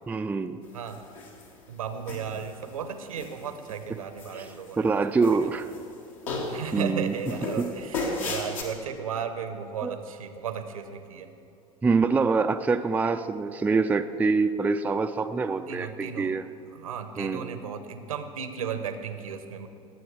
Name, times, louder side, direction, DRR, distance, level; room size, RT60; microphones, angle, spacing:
voice 1, 0.1-0.6 3.9-4.0 4.3-5.7 6.7-7.2 7.6-7.7 9.8-10.0 11.8-16.5 17.2-17.6, right 4 dB, 10° right, 8 dB, 0.4 m, -25 dB
sound 1, 0.9-1.5 2.1-2.7 3.1-3.7 4.2-4.9 5.2-5.9 6.3-6.8 7.2-8.6, left 3 dB, 70° left, 1.8 m, -34 dB
voice 2, 1.7-4.8 6.4-11.3 15.7-16.3 16.8-19.7, right 7 dB, 70° right, 9 dB, 0.9 m, -35 dB
20.0 x 7.8 x 4.7 m, 2.7 s
figure-of-eight pair, 70°, 18 cm